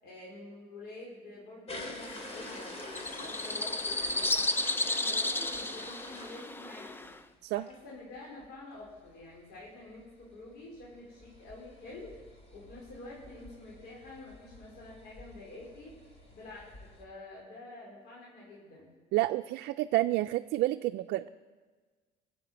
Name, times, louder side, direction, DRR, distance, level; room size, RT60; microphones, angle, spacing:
voice 1, 0.0-4.5 4.8-7.1 7.5-12.1 12.5-16.0 16.3-18.9, left 2 dB, 80° left, -4 dB, 4.7 m, -48 dB
sound 1, 1.7-7.1 7.5-7.8 8.1-8.2 8.4-8.5 8.8-17.0, left 2 dB, 40° left, 3.1 m, -47 dB
sound 2, 2.0-7.2, left 2 dB, 15° left, 0.6 m, -33 dB
voice 2, 19.1-21.3, right 17 dB, 80° right, 8 dB, 0.4 m, -29 dB
20.0 x 7.7 x 8.1 m, 1.4 s
cardioid pair, 110°, 17 cm